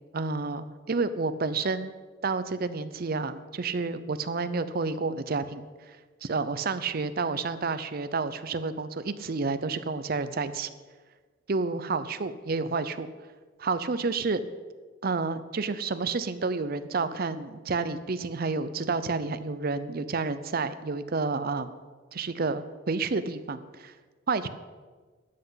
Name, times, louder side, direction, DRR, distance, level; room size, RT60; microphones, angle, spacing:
voice 1, 0.1-2.0 2.2-10.7 11.5-13.1 13.6-14.4 15.0-21.7 22.1-24.0 24.3-24.5, right 4 dB, 50° right, 12 dB, 0.6 m, -30 dB
12.5 x 8.0 x 5.7 m, 1.4 s
head